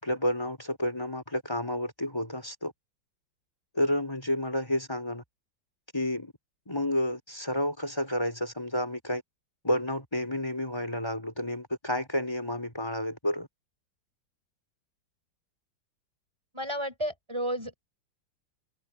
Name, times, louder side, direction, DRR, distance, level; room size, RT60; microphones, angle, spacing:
voice 1, 0.0-2.7 3.7-5.2 5.9-6.3 6.7-9.2 9.6-13.5, left 1 dB, 15° left, 4.1 m, -30 dB
voice 2, 16.5-17.8, equal, 15° right, 6.9 m, -32 dB
open air
omnidirectional pair, 2.0 m